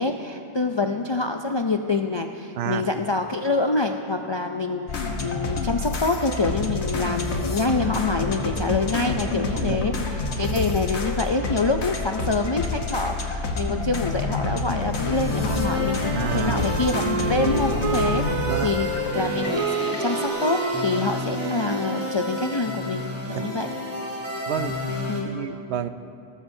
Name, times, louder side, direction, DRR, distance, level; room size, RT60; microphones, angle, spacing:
voice 1, 0.0-18.9 19.1-23.0 23.3-23.7 25.1-25.3, left 3 dB, 50° left, 4 dB, 0.3 m, -26 dB
voice 2, 2.5-2.9 9.5-9.8 16.1-16.6 18.5-18.7 23.3-23.5 24.5-24.8 25.2-25.9, right 10 dB, 75° right, 12 dB, 0.8 m, -29 dB
sound 1, 4.9-20.3, left 3 dB, 85° left, 1.4 m, -28 dB
sound 2, 15.0-25.2, left 1 dB, 15° right, 2.5 m, -32 dB
Wind instrument woodwind instrument, 15.5-22.6, right 4 dB, 40° right, 0.5 m, -30 dB
18.5 x 14.5 x 2.7 m, 2.6 s
omnidirectional pair, 1.1 m